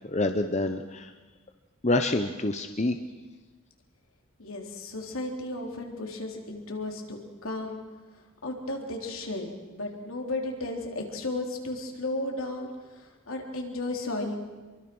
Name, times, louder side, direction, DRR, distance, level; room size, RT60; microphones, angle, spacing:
voice 1, 0.0-1.1 1.8-3.0, left 2 dB, 30° left, 7 dB, 0.9 m, -27 dB
voice 2, 4.4-7.8 8.4-14.3, left 2 dB, 75° left, 2 dB, 3.7 m, -34 dB
25.5 x 23.0 x 6.2 m, 1.3 s
head